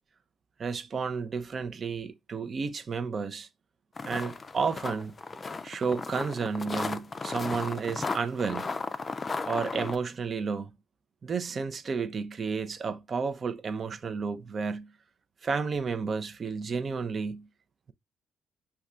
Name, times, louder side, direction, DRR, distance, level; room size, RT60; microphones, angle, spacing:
voice 1, 0.6-3.5 4.0-5.1 5.6-8.8 9.5-10.7 11.2-14.9 15.4-17.4, right 5 dB, 45° right, 0.5 m, -32 dB
sound 1, 4.0-10.0, left 4 dB, 35° left, 0.3 m, -35 dB
5.4 x 2.3 x 2.4 m
cardioid pair, 75°, 0 cm